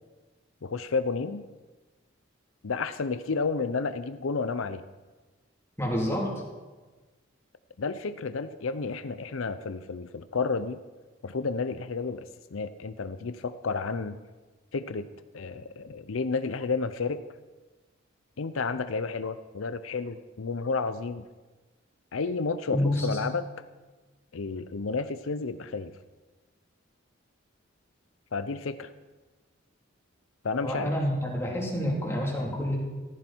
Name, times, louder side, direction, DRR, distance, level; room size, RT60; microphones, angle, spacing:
voice 1, 0.6-1.4 2.6-4.8 7.8-10.8 11.2-14.2 14.7-15.1 15.3-17.2 18.4-21.3 22.1-23.5 24.3-25.9 28.3-28.9 30.4-30.9, left 4 dB, 85° left, 12 dB, 0.6 m, -31 dB
voice 2, 5.8-6.3 22.7-23.1 30.6-32.8, left 1 dB, 15° left, -3 dB, 3.5 m, -28 dB
14.5 x 14.0 x 4.5 m, 1.3 s
head